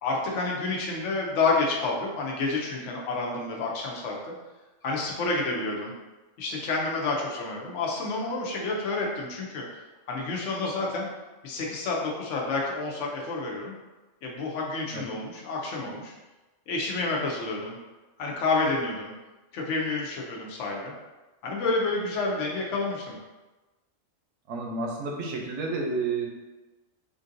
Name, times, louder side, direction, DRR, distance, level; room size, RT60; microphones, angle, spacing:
voice 1, 0.0-4.3 4.8-5.9 6.4-9.6 10.1-11.1 11.4-13.7 14.2-16.1 16.7-17.8 18.2-19.1 19.5-20.9 21.4-23.2, left 3 dB, 75° left, -2 dB, 1.0 m, -29 dB
voice 2, 24.5-26.3, right 3 dB, 70° right, 0 dB, 0.9 m, -30 dB
3.7 x 2.6 x 2.5 m, 1.1 s
omnidirectional pair, 1.3 m